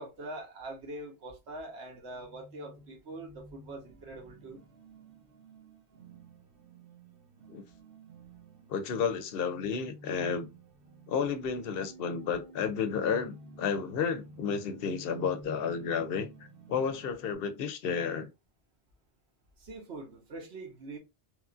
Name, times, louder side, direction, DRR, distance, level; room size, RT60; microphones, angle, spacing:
voice 1, 0.0-4.6 19.6-21.0, right 2 dB, 85° right, 1.2 m, -43 dB
sound 1, 2.0-17.4, right 3 dB, 60° right, 0.9 m, -53 dB
voice 2, 8.7-10.5 11.1-16.3 16.7-18.3, left 6 dB, 65° left, 0.7 m, -31 dB
3.1 x 2.4 x 2.4 m
omnidirectional pair, 1.1 m